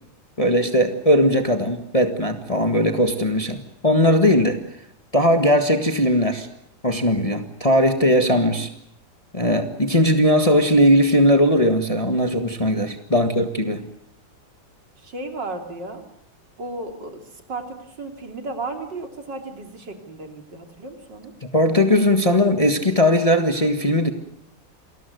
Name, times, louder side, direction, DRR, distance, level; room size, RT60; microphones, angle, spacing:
voice 1, 0.4-4.6 5.1-6.5 6.8-8.7 9.3-13.8 21.4-24.1, equal, 20° left, 6 dB, 1.6 m, -19 dB
voice 2, 15.0-16.0 16.6-21.3, right 2 dB, 65° right, 4 dB, 3.7 m, -34 dB
28.0 x 20.5 x 7.9 m, 0.79 s
omnidirectional pair, 2.1 m